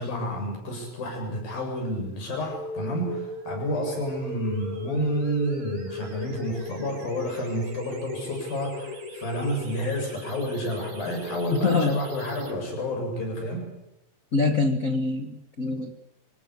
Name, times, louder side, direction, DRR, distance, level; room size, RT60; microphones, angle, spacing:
voice 1, 0.0-13.7, equal, 75° left, 2 dB, 9.4 m, -30 dB
sound 1, 2.5-12.5, left 1 dB, 60° right, 5.3 m, -38 dB
voice 2, 11.6-12.0 14.3-16.0, left 3 dB, 50° left, 7 dB, 0.9 m, -24 dB
26.0 x 18.0 x 8.3 m, 0.87 s
omnidirectional pair, 4.2 m